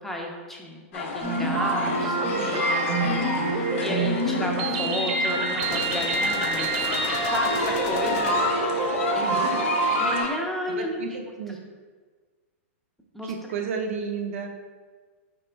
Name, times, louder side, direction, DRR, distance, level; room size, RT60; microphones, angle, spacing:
voice 1, 0.0-2.6 3.0-6.8 7.3-8.6 9.1-11.2 13.1-13.3, equal, 5° left, -1 dB, 0.6 m, -33 dB
sound 1, 0.9-10.3, left 4 dB, 65° left, 0.7 m, -31 dB
sound 2, 1.2-10.2, right 2 dB, 40° right, 0.9 m, -26 dB
voice 2, 2.2-2.8 3.1-3.6 9.2-9.8 10.7-11.6 13.2-14.5, right 5 dB, 70° right, 3 dB, 0.6 m, -33 dB
sound 3, 5.6-8.8, left 6 dB, 35° left, 0.4 m, -36 dB
4.1 x 3.8 x 3.4 m, 1.5 s
hypercardioid pair, 135°, 7 cm